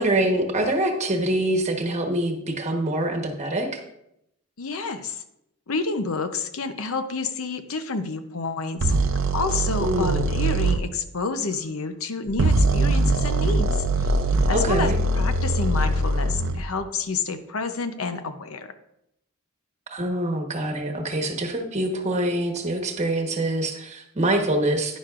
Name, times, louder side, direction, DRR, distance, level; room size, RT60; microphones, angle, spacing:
voice 1, 0.0-3.8 9.8-10.2 14.5-15.0 19.9-25.0, right 1 dB, 30° right, 3 dB, 1.2 m, -25 dB
voice 2, 4.6-5.2 5.7-8.9 9.3-14.2 14.5-14.9 15.2-18.7, left 4 dB, 75° left, 9 dB, 0.7 m, -29 dB
sound 1, 8.8-10.8 12.3-16.6, right 2 dB, 65° right, 0.6 m, -22 dB
10.5 x 10.0 x 2.5 m, 0.81 s
head